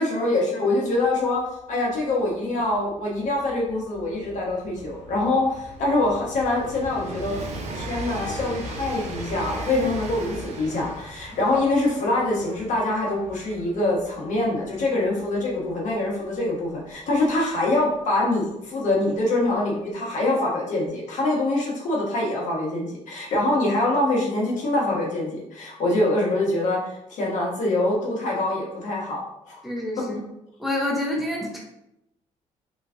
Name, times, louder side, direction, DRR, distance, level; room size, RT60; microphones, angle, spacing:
voice 1, 0.0-7.4 7.7-29.2 29.5-29.6, left 2 dB, 65° left, -3 dB, 1.1 m, -24 dB
Train, 1.0-1.1 1.3-17.9 18.9-19.0, right 1 dB, 55° right, 0.7 m, -38 dB
voice 2, 29.6-30.2 30.6-31.6, left 1 dB, ahead, -2 dB, 0.7 m, -27 dB
3.3 x 3.1 x 2.5 m, 0.83 s
cardioid pair, 110°, 14 cm